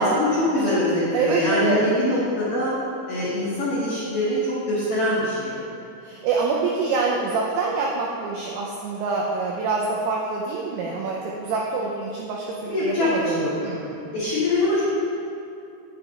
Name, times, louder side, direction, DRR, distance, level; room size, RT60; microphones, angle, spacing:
voice 1, 0.0-2.7 3.1-4.4 4.7-5.6 12.7-13.1 13.4-13.5 14.1-14.8, left 1 dB, 90° left, -9 dB, 1.8 m, -23 dB
voice 2, 0.6-0.9 1.1-2.2 6.0-14.1, right 4 dB, 85° right, -2 dB, 2.6 m, -26 dB
9.5 x 8.0 x 2.9 m, 2.6 s
omnidirectional pair, 5.9 m